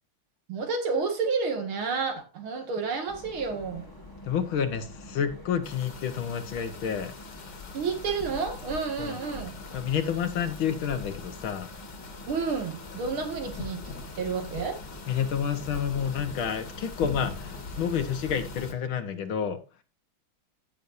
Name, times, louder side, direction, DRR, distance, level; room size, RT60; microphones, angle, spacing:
voice 1, 0.5-3.8 7.7-9.6 12.3-13.8 14.2-14.8, right 5 dB, 80° right, 2.9 m, -30 dB
sound 1, 3.1-18.7, left 1 dB, 10° left, 1.3 m, -46 dB
voice 2, 4.2-7.1 9.0-9.2 9.7-11.7 15.1-19.6, left 8 dB, 75° left, 2.1 m, -29 dB
sound 2, 5.6-18.7, left 4 dB, 55° left, 2.3 m, -42 dB
16.0 x 6.6 x 2.6 m
omnidirectional pair, 2.3 m